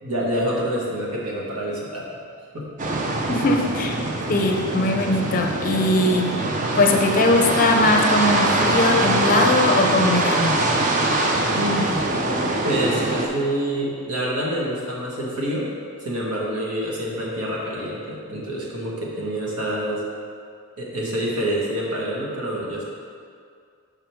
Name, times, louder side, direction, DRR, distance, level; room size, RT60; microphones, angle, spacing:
voice 1, 0.0-2.1 2.5-2.7 11.5-12.1 12.5-15.7 16.0-20.0 20.8-22.8, right 1 dB, 80° right, -4 dB, 1.5 m, -27 dB
sound 1, 2.8-13.3, right 2 dB, 35° right, 0.5 m, -23 dB
voice 2, 3.3-4.0 4.3-6.4 6.7-10.7, left 2 dB, 40° left, 3 dB, 0.5 m, -20 dB
5.8 x 5.2 x 4.5 m, 2.2 s
head